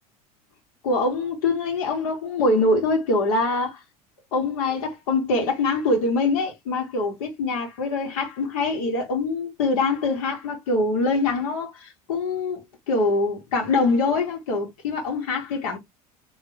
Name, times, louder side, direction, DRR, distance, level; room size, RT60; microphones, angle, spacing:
voice 1, 0.8-3.8 4.3-12.6 12.9-15.8, left 3 dB, 70° left, 2.3 m, -24 dB
3.8 x 3.5 x 3.3 m
hypercardioid pair, 80°, 19 cm